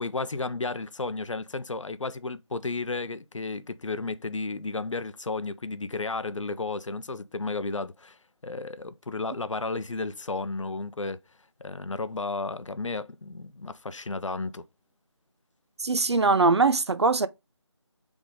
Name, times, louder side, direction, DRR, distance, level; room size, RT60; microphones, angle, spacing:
voice 1, 0.0-11.2 11.6-14.6, left 3 dB, 85° left, 0.5 m, -33 dB
voice 2, 15.8-17.3, right 3 dB, 65° right, 0.5 m, -22 dB
3.9 x 3.5 x 3.7 m
figure-of-eight pair, 160°, 15 cm